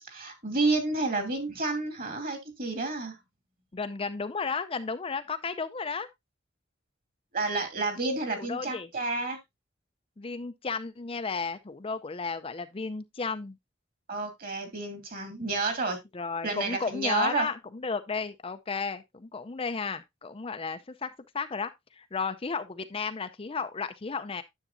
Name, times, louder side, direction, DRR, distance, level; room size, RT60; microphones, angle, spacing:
voice 1, 0.1-3.2 7.3-9.4 14.1-16.0 16.4-17.5, right 3 dB, 45° right, 2.6 m, -30 dB
voice 2, 3.7-6.1 8.4-8.9 10.2-13.6 16.1-21.1 21.3-24.4, left 4 dB, 30° left, 0.5 m, -33 dB
9.9 x 7.2 x 2.6 m
head